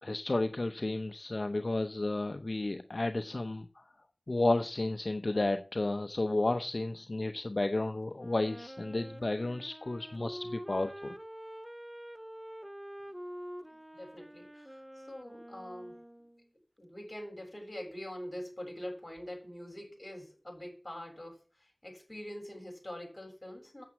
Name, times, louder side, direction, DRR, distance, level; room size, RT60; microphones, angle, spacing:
voice 1, 0.0-3.9 4.3-11.1, left 2 dB, 55° left, 8 dB, 0.8 m, -32 dB
Wind instrument woodwind instrument, 8.1-16.5, equal, 10° right, 0.6 m, -46 dB
voice 2, 13.6-16.0 16.8-23.8, left 1 dB, 25° left, 0 dB, 7.5 m, -44 dB
9.2 x 7.3 x 7.6 m, 0.37 s
wide cardioid pair, 50°, 0 cm